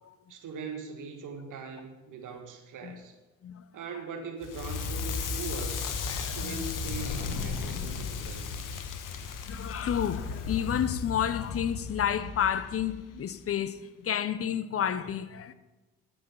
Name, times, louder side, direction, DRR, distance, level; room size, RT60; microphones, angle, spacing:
voice 1, 0.3-3.1 3.7-5.8 6.2-8.8, right 4 dB, 50° right, 1.5 m, -41 dB
Crackle, 4.4-13.4, left 5 dB, 50° left, 1.2 m, -35 dB
voice 2, 6.1-6.6 9.4-15.5, left 9 dB, 35° left, 0.8 m, -31 dB
12.5 x 6.0 x 7.3 m
figure-of-eight pair, 50°, 40 cm